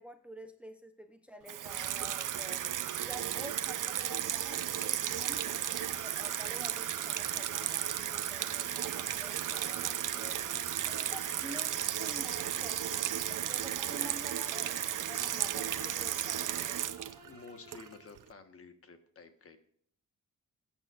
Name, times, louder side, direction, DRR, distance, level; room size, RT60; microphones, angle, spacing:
voice 1, 0.0-2.6 3.1-10.4 10.8-14.8 15.1-16.8, equal, 5° right, 7 dB, 0.8 m, -50 dB
sound 1, 1.4-16.7, left 6 dB, 80° left, 1.5 m, -57 dB
Water tap faucet / Sink (filling or washing), 1.5-18.2, right 11 dB, 80° right, 0.7 m, -34 dB
voice 2, 5.0-5.6 10.2-11.0 14.0-14.2 15.0-15.3 17.1-19.6, left 4 dB, 45° left, 7 dB, 1.4 m, -54 dB
Bowed string instrument, 5.3-18.1, left 1 dB, 30° right, 3.5 m, -55 dB
20.0 x 8.8 x 2.5 m, 0.62 s
wide cardioid pair, 170°, 31 cm